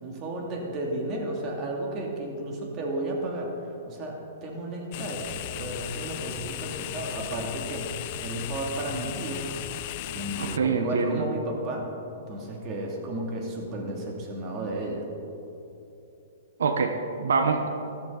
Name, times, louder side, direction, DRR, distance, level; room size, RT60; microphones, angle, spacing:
voice 1, 0.0-9.5 10.1-11.9 12.3-15.1, right 1 dB, 30° right, 0 dB, 2.5 m, -33 dB
sound 1, 4.9-10.6, left 15 dB, 45° left, 0.4 m, -36 dB
voice 2, 10.4-11.3 16.6-17.7, right 5 dB, 85° right, 6 dB, 1.0 m, -25 dB
14.0 x 13.5 x 4.0 m, 3.0 s
hypercardioid pair, 145°, 0 cm